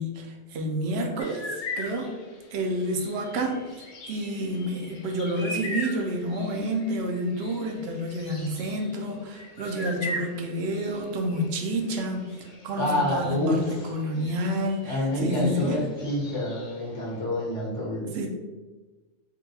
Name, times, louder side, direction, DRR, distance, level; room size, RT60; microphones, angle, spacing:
voice 1, 0.0-2.1 2.5-15.8 18.1-18.3, right 1 dB, 65° right, 2 dB, 0.7 m, -29 dB
sound 1, 1.2-17.2, left 1 dB, 90° left, 0.3 m, -41 dB
voice 2, 12.8-13.9 14.8-18.1, left 1 dB, 65° left, -5 dB, 1.4 m, -27 dB
3.8 x 2.2 x 2.7 m, 1.2 s
omnidirectional pair, 1.3 m